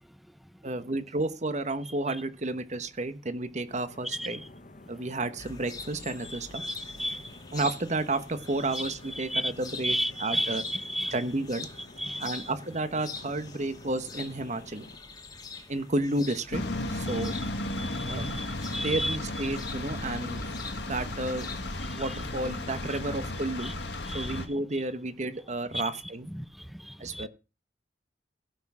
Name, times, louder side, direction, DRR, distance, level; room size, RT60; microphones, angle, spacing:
voice 1, 0.6-4.4 4.9-6.6 7.5-10.6 11.1-11.7 12.2-14.9 15.7-16.6 16.9-17.4 18.0-18.3 18.8-20.4 20.8-21.5 21.9-23.7 24.1-26.3 27.0-27.3, right 2 dB, 40° right, 1.2 m, -31 dB
sound 1, 3.7-15.0, left 2 dB, 50° left, 1.1 m, -50 dB
sound 2, 5.4-21.8, left 4 dB, 25° left, 1.6 m, -45 dB
voice 2, 6.3-7.3 8.7-8.8 9.2-9.5 9.8-11.2 12.0-12.5 17.1-17.4 17.7-19.2 21.8-22.1 23.6-23.7 24.0-24.4 25.7-25.9 26.3-27.3, equal, ahead, 0.6 m, -34 dB
sound 3, 16.5-24.5, left 1 dB, 75° left, 2.0 m, -34 dB
16.5 x 5.9 x 6.3 m
head